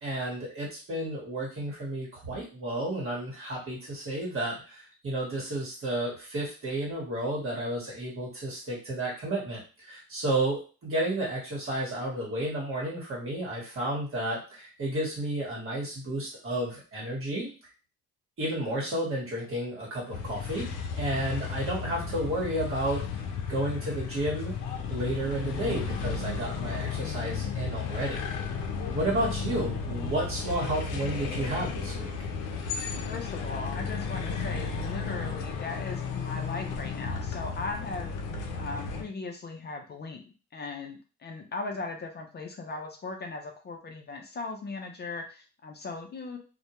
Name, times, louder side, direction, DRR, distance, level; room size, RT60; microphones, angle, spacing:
voice 1, 0.0-17.5 18.4-23.0 23.5-24.5 24.9-28.2 28.9-32.1, right 1 dB, 45° right, -4 dB, 1.1 m, -32 dB
sound 1, 20.1-39.0, left 5 dB, 90° left, 0.5 m, -34 dB
voice 2, 33.0-38.1 38.6-40.2 40.5-46.4, left 3 dB, 35° left, 3 dB, 0.5 m, -38 dB
2.2 x 2.1 x 2.8 m, 0.35 s
cardioid pair, 90°, 30 cm